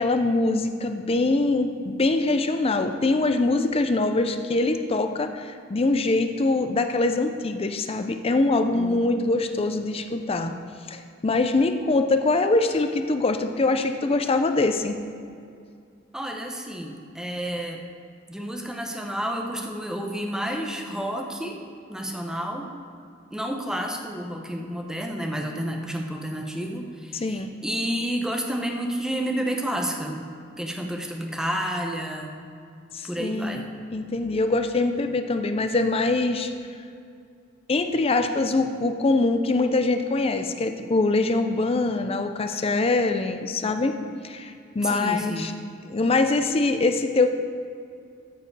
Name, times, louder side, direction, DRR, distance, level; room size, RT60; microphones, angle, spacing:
voice 1, 0.0-10.5 10.9-15.0 27.2-27.5 32.9-36.5 37.7-44.0 44.2-45.5 45.8-47.3, left 2 dB, 30° left, 7 dB, 0.5 m, -23 dB
voice 2, 8.7-9.3 16.1-17.8 18.3-21.6 21.9-22.7 23.3-32.3 33.1-33.7 44.8-45.6, equal, 5° right, 1 dB, 0.8 m, -30 dB
14.0 x 4.7 x 4.7 m, 2.3 s
head